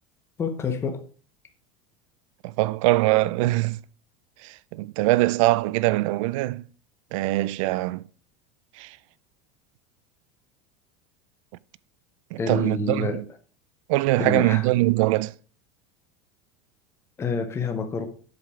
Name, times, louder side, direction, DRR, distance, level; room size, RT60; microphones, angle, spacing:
voice 1, 0.4-1.0 12.4-13.2 14.2-14.7 17.2-18.1, left 5 dB, 15° left, 0.8 m, -28 dB
voice 2, 2.4-3.8 4.4-6.6 7.1-8.0 8.8-9.0 12.3-13.2 13.9-15.3, right 18 dB, 65° right, 0.4 m, -23 dB
8.0 x 6.7 x 4.9 m
cardioid pair, 175°, 18 cm